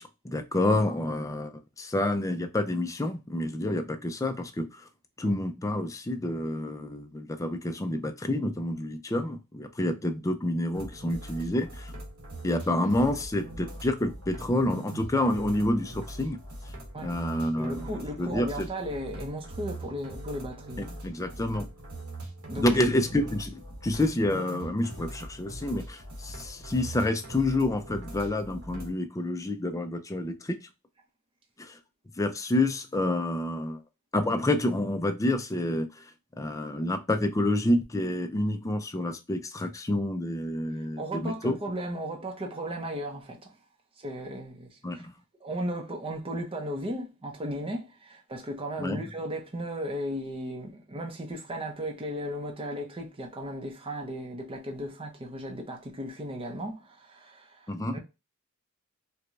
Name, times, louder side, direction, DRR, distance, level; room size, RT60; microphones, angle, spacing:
voice 1, 0.0-4.7 5.2-11.9 12.4-16.4 17.0-17.9 18.2-18.7 20.8-21.7 22.6-30.6 31.6-31.8 32.2-33.8 34.1-36.1 36.4-41.6 44.8-45.1 48.8-49.0 57.7-58.0, left 1 dB, 15° left, 0.4 m, -28 dB
sound 1, 10.7-28.9, right 1 dB, 75° right, 1.2 m, -42 dB
voice 2, 17.5-20.9 22.5-22.8 41.0-43.5 44.0-45.1 45.4-58.0, equal, 25° right, 0.7 m, -36 dB
4.6 x 2.2 x 2.5 m
head